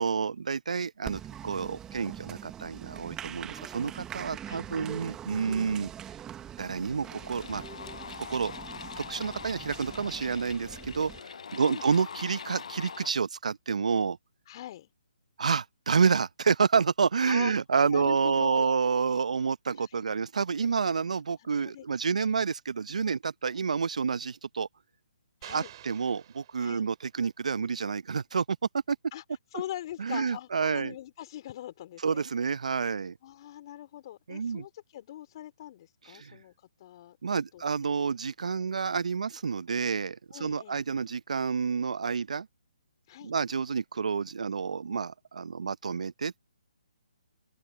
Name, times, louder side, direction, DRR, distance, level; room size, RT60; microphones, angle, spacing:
voice 1, 0.0-5.9 6.6-7.6 8.2-8.5 9.0-11.1 11.5-14.2 15.4-24.7 25.5-28.6 28.9-29.0 30.0-30.9 32.0-33.2 34.3-34.6 36.1-36.4 37.2-42.5 43.2-46.4, right 5 dB, 65° right, 0.9 m, -29 dB
Applause, 1.0-11.2, right 10 dB, 15° right, 1.3 m, -43 dB
sound 1, 6.4-6.5 6.9-13.1, left 6 dB, 65° left, 0.5 m, -43 dB
voice 2, 11.5-11.8 14.5-14.9 17.3-17.6 17.9-18.8 19.7-20.0 21.4-21.9 22.2-22.3 23.5-23.6 25.4-25.7 26.6-26.9 29.1-29.2 29.5-32.3 33.2-37.6 40.3-40.8 43.1-43.3, left 12 dB, 40° left, 3.6 m, -42 dB
sound 2, 25.4-27.1, right 12 dB, 40° right, 3.4 m, -49 dB
open air
figure-of-eight pair, 140°, 4 cm